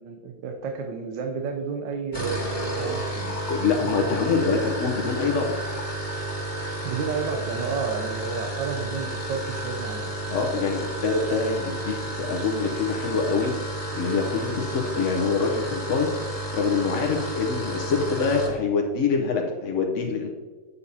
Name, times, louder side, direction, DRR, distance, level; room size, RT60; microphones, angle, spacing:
voice 1, 0.0-3.4 6.6-10.1, right 5 dB, 85° right, 3 dB, 1.4 m, -31 dB
sound 1, 2.0-18.6, right 1 dB, 15° left, 1.8 m, -31 dB
voice 2, 3.5-5.5 10.3-13.5 13.9-16.1 16.5-20.3, left 5 dB, 55° left, 1 dB, 0.9 m, -25 dB
8.1 x 6.9 x 2.7 m, 1.4 s
omnidirectional pair, 1.9 m